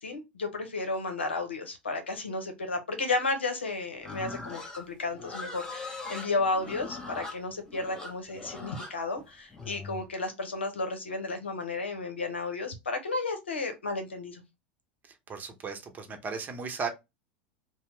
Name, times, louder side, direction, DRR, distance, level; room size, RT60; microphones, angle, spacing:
voice 1, 0.0-14.4, left 3 dB, 85° left, 0.7 m, -33 dB
Livestock farm animals working animals, 4.0-10.1, left 3 dB, 10° left, 0.9 m, -41 dB
voice 2, 15.1-16.9, right 5 dB, 30° right, 0.8 m, -36 dB
2.9 x 2.0 x 3.2 m
hypercardioid pair, 85°, 6 cm